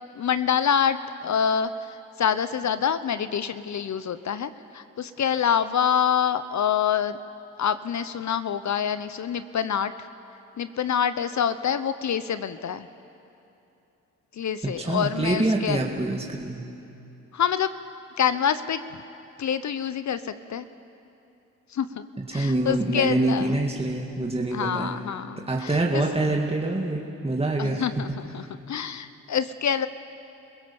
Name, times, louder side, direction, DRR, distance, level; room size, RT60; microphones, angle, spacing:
voice 1, 0.1-7.2 7.6-10.1 10.6-12.9 14.3-15.8 17.3-17.7 18.2-18.8 19.4-20.7 21.7-22.1 22.3-23.6 24.5-26.0 27.6-29.9, left 8 dB, 50° left, 13 dB, 0.9 m, -26 dB
voice 2, 14.8-16.6 22.3-24.9 25.5-27.8, right 2 dB, 15° right, -1 dB, 2.2 m, -25 dB
27.5 x 16.5 x 7.1 m, 2.8 s
supercardioid pair, 55°, 36 cm